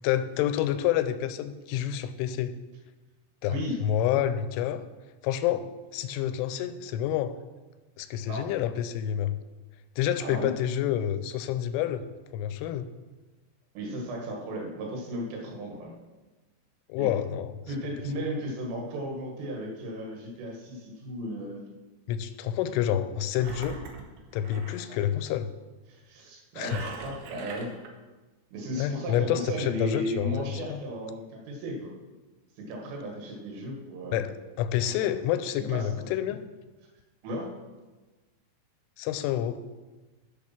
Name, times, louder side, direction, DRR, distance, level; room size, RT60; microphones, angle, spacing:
voice 1, 0.0-2.5 3.4-4.8 5.2-7.3 8.0-9.4 10.0-12.1 12.3-12.9 16.9-17.5 22.1-23.8 24.3-25.5 26.6-26.8 28.8-30.3 30.7-30.8 34.1-34.3 34.6-36.4 39.0-39.6, left 11 dB, 85° left, 11 dB, 3.0 m, -28 dB
voice 2, 10.2-10.5 13.8-16.0 17.0-17.1 17.7-21.6 24.9-25.0 25.9-27.8 28.5-31.9 32.6-34.2 35.0-35.1 35.7-36.0 37.2-37.5, equal, 90° right, 0 dB, 4.3 m, -35 dB
Engine, 23.3-24.9 26.6-27.9, right 4 dB, 75° right, 3.1 m, -41 dB
8.3 x 6.9 x 5.9 m, 1.2 s
omnidirectional pair, 5.6 m